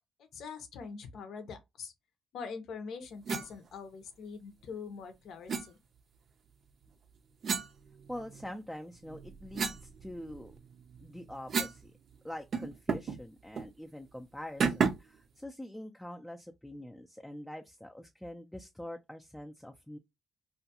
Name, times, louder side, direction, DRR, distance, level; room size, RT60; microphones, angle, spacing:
voice 1, 0.2-1.9 2.3-5.8, left 5 dB, 75° left, 0.6 m, -44 dB
sound 1, 3.3-3.5 5.5-5.7 7.4-8.5 9.0-11.9 12.1-12.2 12.5-13.2 13.5-13.7 14.6-15.2, right 5 dB, 55° right, 0.4 m, -33 dB
voice 2, 8.1-10.5 11.0-11.9 12.2-20.0, left 1 dB, 5° left, 0.3 m, -44 dB
2.4 x 2.3 x 2.7 m
cardioid pair, 90°, 0 cm